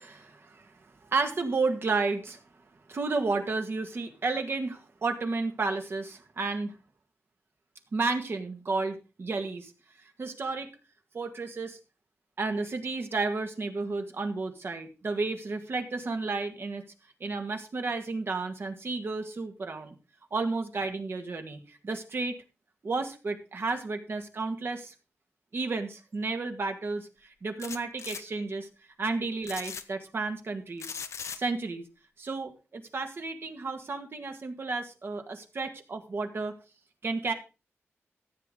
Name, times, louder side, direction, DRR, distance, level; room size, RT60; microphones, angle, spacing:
voice 1, 0.0-2.4 2.9-6.7 7.9-9.7 10.2-10.7 11.1-11.8 12.4-16.8 17.2-19.9 20.3-22.4 22.8-24.9 25.5-28.7 29.0-31.0 31.4-31.9 32.2-36.5 37.0-37.3, right 3 dB, 55° right, 6 dB, 1.8 m, -32 dB
sound 1, 27.6-28.2 29.4-29.8 30.8-31.4, left 6 dB, 85° left, 0.9 m, -38 dB
14.5 x 8.2 x 3.8 m, 0.32 s
wide cardioid pair, 120°, 5 cm